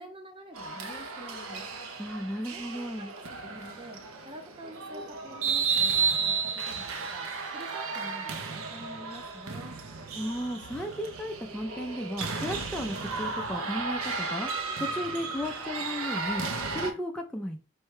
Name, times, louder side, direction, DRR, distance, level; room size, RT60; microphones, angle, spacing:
voice 1, 0.0-1.7 2.5-9.8, equal, 25° right, 4 dB, 0.7 m, -47 dB
sound 1, 0.5-16.9, right 5 dB, 90° right, 0.6 m, -33 dB
voice 2, 2.0-3.1 10.1-14.5 14.8-16.4 16.7-17.6, equal, 5° left, 0 dB, 0.3 m, -34 dB
4.5 x 2.2 x 4.7 m, 0.35 s
head